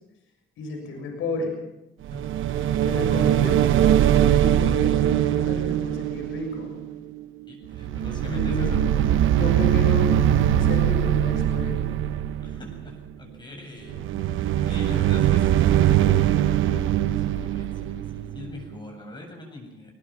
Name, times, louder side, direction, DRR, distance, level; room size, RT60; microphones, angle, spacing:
voice 1, 0.6-1.6 2.8-6.7 8.2-9.0 9.3-10.2 10.6-11.8 13.8-13.9 14.8-15.2 17.2-17.4, left 1 dB, 85° left, 2 dB, 6.6 m, -32 dB
voice 2, 2.1-2.8 7.5-8.8 12.4-14.1 14.7-15.9 17.4-19.9, left 2 dB, 20° left, 1 dB, 7.8 m, -43 dB
sound 1, 2.1-7.4 7.7-12.9 13.9-18.7, right 11 dB, 80° right, 1.1 m, -22 dB
22.0 x 20.0 x 6.0 m, 0.89 s
cardioid pair, 90°, 20 cm